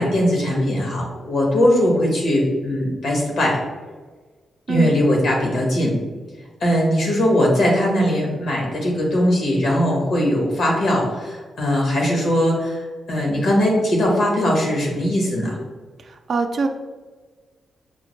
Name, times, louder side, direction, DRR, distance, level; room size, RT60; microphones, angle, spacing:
voice 1, 0.0-3.6 4.7-6.0 6.6-15.6, equal, 80° left, -1 dB, 1.2 m, -20 dB
voice 2, 4.7-5.0 16.0-16.7, right 4 dB, 60° right, 6 dB, 0.4 m, -24 dB
5.8 x 2.1 x 3.1 m, 1.4 s
cardioid pair, 65°, 0 cm